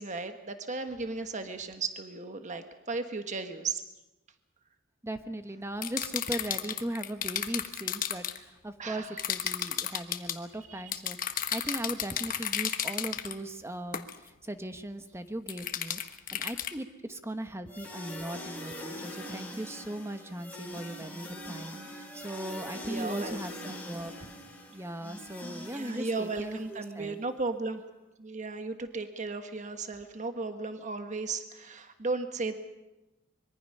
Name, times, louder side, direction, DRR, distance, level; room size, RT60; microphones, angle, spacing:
voice 1, 0.0-3.8 8.8-9.2 22.8-23.7 25.7-27.8 28.2-32.5, right 3 dB, 40° right, 7 dB, 1.3 m, -35 dB
voice 2, 5.0-24.3 24.7-27.2, right 1 dB, 15° right, 8 dB, 1.1 m, -38 dB
sound 1, 5.8-8.4 9.2-10.4 10.9-13.3 13.9-14.2 15.5-16.7, left 9 dB, 45° left, 1.2 m, -33 dB
sound 2, 17.7-26.8, left 1 dB, 10° left, 3.6 m, -43 dB
25.0 x 22.5 x 5.5 m, 1.0 s
head